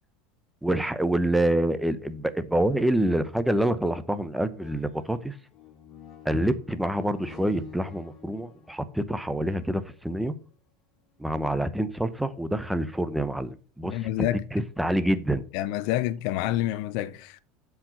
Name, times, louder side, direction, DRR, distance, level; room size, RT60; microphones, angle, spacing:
voice 1, 0.6-5.3 6.2-10.3 11.2-15.4, right 1 dB, 5° right, 0.8 m, -27 dB
sound 1, 4.5-10.4 11.1-11.2, left 8 dB, 45° left, 2.6 m, -50 dB
voice 2, 13.8-14.4 15.5-17.4, left 14 dB, 65° left, 0.6 m, -28 dB
7.3 x 4.9 x 5.5 m
hypercardioid pair, 95°, 0 cm